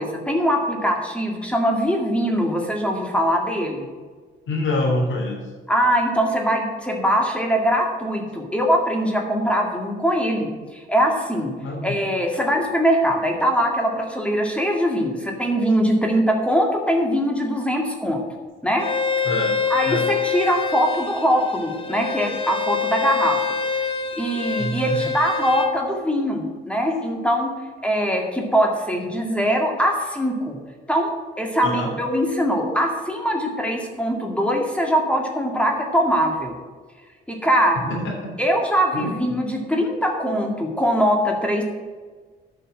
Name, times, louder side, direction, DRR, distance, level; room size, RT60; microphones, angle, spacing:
voice 1, 0.0-3.9 5.7-11.5 11.8-18.2 18.6-18.9 19.7-23.4 24.2-27.5 27.8-30.6 30.9-36.5 37.3-38.0 38.4-41.6, equal, 5° left, 1 dB, 2.1 m, -22 dB
voice 2, 4.5-5.4 11.6-12.0 19.2-19.5 19.8-20.0 24.6-25.0 31.6-31.9 37.9-38.3 38.9-39.1, left 1 dB, 75° left, 0 dB, 3.3 m, -25 dB
Bowed string instrument, 18.8-25.7, left 5 dB, 25° left, 1.3 m, -26 dB
10.0 x 5.8 x 7.6 m, 1.5 s
cardioid pair, 90°, 20 cm